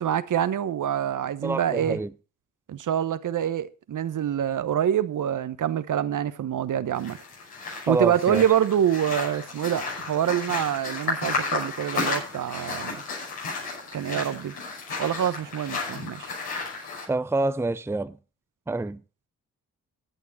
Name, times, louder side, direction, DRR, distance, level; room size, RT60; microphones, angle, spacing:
voice 1, 0.0-2.0 2.7-7.2 7.7-13.0 13.9-14.5 15.0-16.3, right 10 dB, 55° right, 1.0 m, -26 dB
voice 2, 1.4-2.1 7.9-8.4 17.1-18.2 18.7-19.0, right 2 dB, 5° right, 0.7 m, -26 dB
sound 1, 6.9-17.0, left 4 dB, 75° left, 6.0 m, -33 dB
14.5 x 9.3 x 4.1 m
hypercardioid pair, 40°, 38 cm